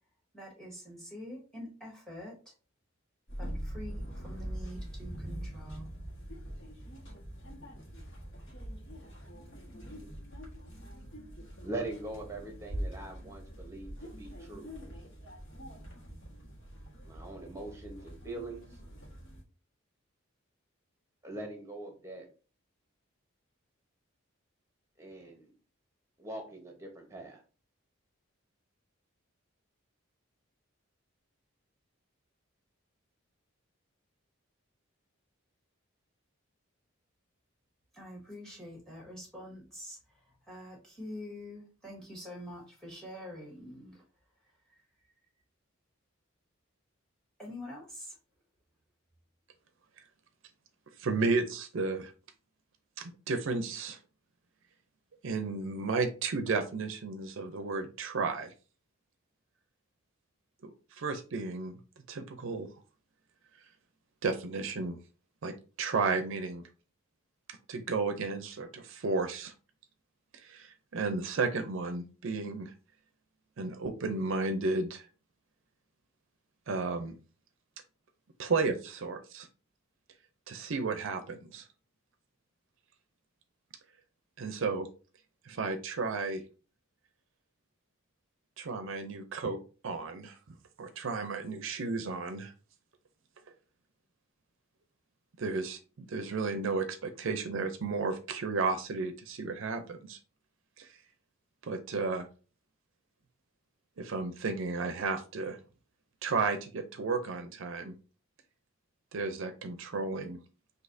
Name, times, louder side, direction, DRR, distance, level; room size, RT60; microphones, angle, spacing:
voice 1, 0.3-2.5 3.4-5.9 37.9-44.0 47.4-48.2, left 1 dB, 5° left, -2 dB, 1.5 m, -46 dB
sound 1, 3.3-19.4, equal, 65° left, 1.4 m, -43 dB
voice 2, 11.6-14.8 17.0-18.7 21.2-22.3 25.0-25.5 26.2-27.4, right 2 dB, 15° right, 3 dB, 0.9 m, -42 dB
voice 3, 51.0-52.1 53.0-54.0 55.2-58.5 60.6-61.8 62.1-62.7 64.2-65.0 65.4-66.6 67.7-69.5 70.3-72.7 73.6-75.1 76.7-77.2 78.4-79.5 80.5-81.7 84.4-84.9 85.5-86.4 88.6-89.6 89.8-90.4 90.8-92.5 95.4-100.2 100.8-100.9 101.6-102.3 104.0-105.6 106.2-107.9 109.1-110.4, right 4 dB, 65° right, 8 dB, 0.5 m, -33 dB
6.1 x 2.7 x 2.6 m, 0.36 s
head